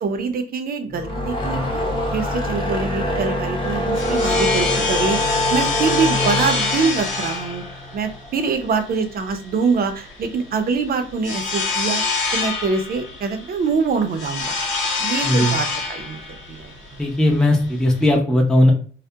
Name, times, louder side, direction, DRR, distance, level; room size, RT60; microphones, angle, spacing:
voice 1, 0.0-1.6 2.1-7.6 7.9-12.0 12.3-14.5 15.0-16.7, right 5 dB, 50° right, 7 dB, 0.5 m, -24 dB
sound 1, 0.9-8.3, left 1 dB, 25° left, 0.8 m, -25 dB
sound 2, 3.6-18.2, left 4 dB, 80° left, 1.1 m, -26 dB
voice 2, 15.2-15.5 17.0-18.7, left 1 dB, 5° left, 0 dB, 0.5 m, -17 dB
2.3 x 2.1 x 2.7 m, 0.42 s
cardioid pair, 90°, 20 cm